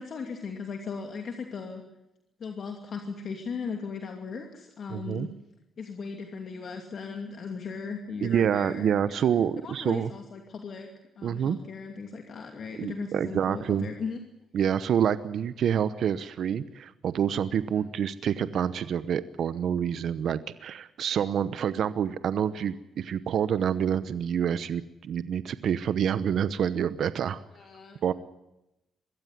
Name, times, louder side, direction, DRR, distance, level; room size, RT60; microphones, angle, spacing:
voice 1, 0.0-1.8 2.4-5.3 5.8-9.3 9.6-10.9 11.2-14.2 27.5-28.0, left 5 dB, 55° left, 4 dB, 2.6 m, -37 dB
voice 2, 4.9-5.3 8.2-10.1 11.2-11.6 12.8-13.9 14.5-27.4 28.0-28.1, right 8 dB, 65° right, 14 dB, 0.9 m, -27 dB
23.0 x 15.5 x 9.5 m, 0.90 s
cardioid pair, 90°, 0 cm